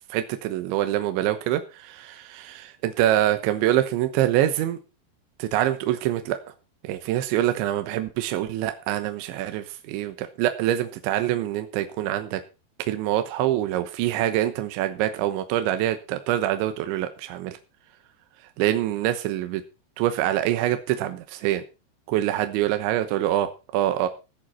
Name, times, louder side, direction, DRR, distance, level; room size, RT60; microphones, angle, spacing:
voice 1, 0.1-4.8 5.4-6.4 6.8-12.4 12.8-17.6 18.6-19.6 20.0-21.6 22.1-24.1, right 13 dB, 80° right, 9 dB, 3.3 m, -25 dB
16.5 x 7.8 x 5.6 m, 0.31 s
omnidirectional pair, 5.5 m